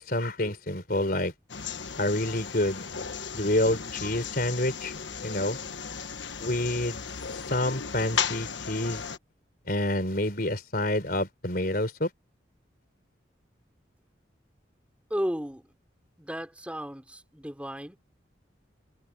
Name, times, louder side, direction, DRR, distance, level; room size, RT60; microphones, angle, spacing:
voice 1, 0.0-1.3 2.0-2.9 3.3-4.9 5.2-5.6 6.4-7.0 7.5-9.0 9.7-12.1, left 1 dB, 50° left, 4.3 m, -28 dB
sound 1, 1.5-9.2, left 6 dB, 75° left, 1.3 m, -35 dB
voice 2, 15.1-15.7 16.2-18.0, equal, 5° right, 3.8 m, -34 dB
head